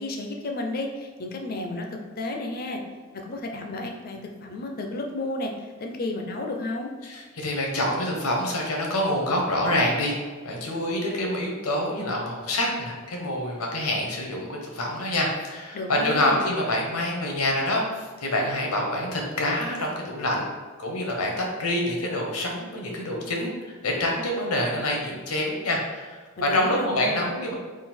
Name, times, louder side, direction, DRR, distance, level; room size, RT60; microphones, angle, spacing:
voice 1, 0.0-2.8 3.1-5.5 5.8-6.9 15.7-16.5 26.4-27.3, left 2 dB, 40° left, 3 dB, 0.5 m, -32 dB
voice 2, 7.0-10.2 10.4-20.5 20.8-27.5, left 1 dB, 85° left, 0 dB, 0.9 m, -26 dB
3.8 x 2.4 x 4.2 m, 1.5 s
head